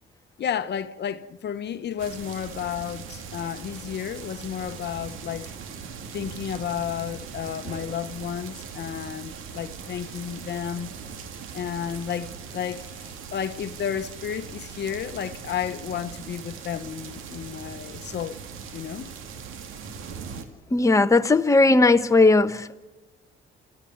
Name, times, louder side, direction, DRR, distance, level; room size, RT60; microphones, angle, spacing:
voice 1, 0.4-5.6 6.1-10.9 11.5-18.4 18.7-19.1, left 8 dB, 60° left, 1.0 m, -32 dB
sound 1, 2.0-20.4, right 6 dB, 90° right, 2.3 m, -40 dB
voice 2, 20.7-22.7, left 3 dB, 15° left, 1.2 m, -18 dB
29.0 x 15.0 x 7.5 m
cardioid pair, 90°, 20 cm